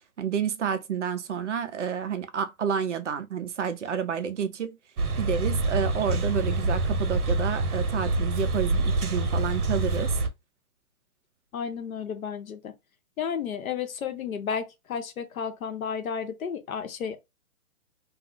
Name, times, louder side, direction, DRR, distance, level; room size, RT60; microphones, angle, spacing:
voice 1, 0.2-4.8 5.2-10.1, right 7 dB, 55° right, 0.5 m, -30 dB
sound 1, 5.0-10.3, right 2 dB, 75° right, 0.9 m, -26 dB
voice 2, 11.5-12.7 13.2-17.2, left 7 dB, 65° left, 0.8 m, -32 dB
2.4 x 2.0 x 3.7 m
hypercardioid pair, 170°, 44 cm